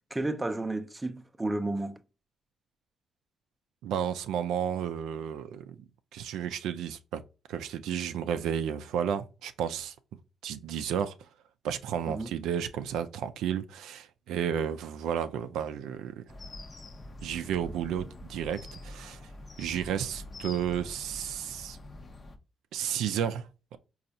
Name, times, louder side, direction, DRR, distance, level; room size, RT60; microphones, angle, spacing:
voice 1, 0.1-2.0 12.1-12.3, right 2 dB, 15° right, 0.4 m, -32 dB
voice 2, 3.8-5.8 6.1-7.2 7.5-9.9 10.4-11.1 11.6-16.2 17.2-19.2 19.6-21.8 22.7-23.8, right 9 dB, 85° right, 0.3 m, -32 dB
sound 1, 16.3-22.4, left 2 dB, 35° left, 0.6 m, -45 dB
4.1 x 2.3 x 2.6 m
cardioid pair, 90°, 0 cm